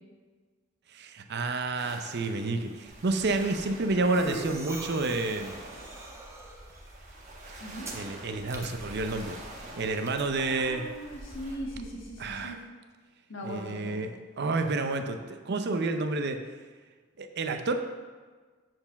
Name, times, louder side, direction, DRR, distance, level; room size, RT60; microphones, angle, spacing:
voice 1, 0.9-5.6 7.9-9.4 9.6-10.8 12.2-12.6 13.4-16.4 17.2-17.8, right 3 dB, 55° right, 6 dB, 0.6 m, -30 dB
sound 1, 1.8-11.6, right 2 dB, 35° right, 1.4 m, -48 dB
sound 2, 2.9-12.4, right 1 dB, 15° right, 0.8 m, -44 dB
voice 2, 10.6-12.6 13.3-14.0, equal, 65° left, -1 dB, 1.6 m, -39 dB
7.7 x 4.5 x 5.8 m, 1.4 s
head